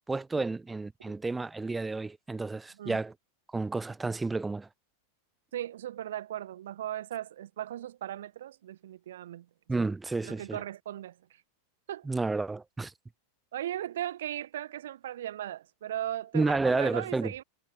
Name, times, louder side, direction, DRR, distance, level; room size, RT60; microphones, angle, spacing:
voice 1, 0.1-3.1 3.5-4.7 9.7-10.6 12.0-12.9 16.3-17.3, right 3 dB, 10° right, 0.4 m, -31 dB
voice 2, 5.5-9.5 10.2-11.4 11.9-12.1 13.5-17.4, right 12 dB, 60° right, 1.5 m, -37 dB
figure-of-eight pair, 90°, 0 cm